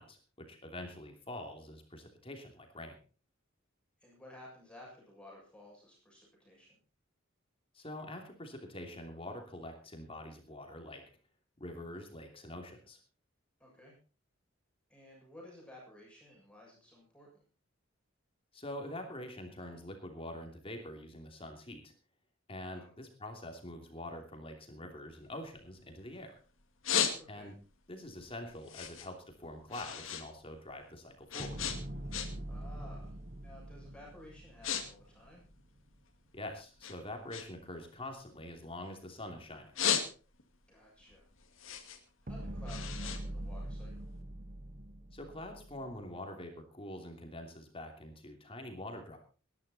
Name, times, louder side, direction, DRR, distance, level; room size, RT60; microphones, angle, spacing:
voice 1, 0.0-3.0 7.7-11.0 11.6-13.0 18.5-21.9 22.5-26.4 27.3-27.5 27.9-31.6 36.3-39.8 45.1-49.2, left 1 dB, 30° left, 4 dB, 3.0 m, -45 dB
voice 2, 4.0-6.8 13.6-13.9 14.9-17.4 22.7-22.9 27.2-27.5 32.5-33.2 33.4-35.4 40.7-41.3 42.2-44.1, left 1 dB, 5° left, -3 dB, 7.2 m, -55 dB
sound 1, 25.1-26.2 26.6-27.7 28.1-30.3 30.6-32.6 32.9-33.2 33.8-34.0 34.3-34.8 35.1-36.3 36.8-39.1 39.5-40.6 41.0-44.1, left 8 dB, 80° left, 2.3 m, -36 dB
sound 2, 31.4-35.7 42.3-46.0, right 1 dB, 45° right, 1.6 m, -43 dB
19.5 x 11.0 x 4.3 m, 0.37 s
head